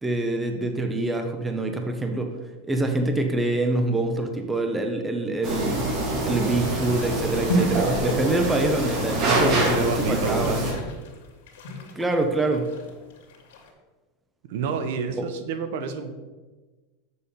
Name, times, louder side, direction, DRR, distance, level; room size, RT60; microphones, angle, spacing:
voice 1, 0.0-2.3 2.7-5.9 6.3-10.7 12.0-12.7, right 2 dB, 10° right, 5 dB, 0.6 m, -25 dB
sound 1, 5.4-10.7, right 1 dB, 35° right, 2.1 m, -25 dB
sound 2, 5.7-13.7, equal, 75° left, 2.0 m, -34 dB
voice 2, 9.3-10.6 14.5-16.1, right 5 dB, 60° right, 9 dB, 0.9 m, -28 dB
7.1 x 6.8 x 5.2 m, 1.3 s
supercardioid pair, 165°, 0 cm